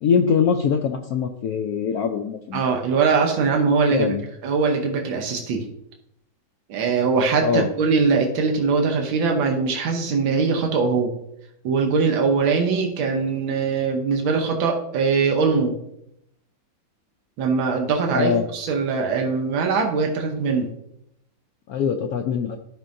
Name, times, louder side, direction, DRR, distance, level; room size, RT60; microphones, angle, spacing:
voice 1, 0.0-2.6 3.9-4.2 7.4-7.7 18.1-18.4 21.7-22.6, left 6 dB, 70° left, 4 dB, 0.9 m, -22 dB
voice 2, 2.5-4.1 4.4-5.6 6.7-11.1 11.6-15.8 17.4-20.7, right 4 dB, 85° right, 2 dB, 1.7 m, -21 dB
13.5 x 5.2 x 2.6 m, 0.78 s
omnidirectional pair, 2.1 m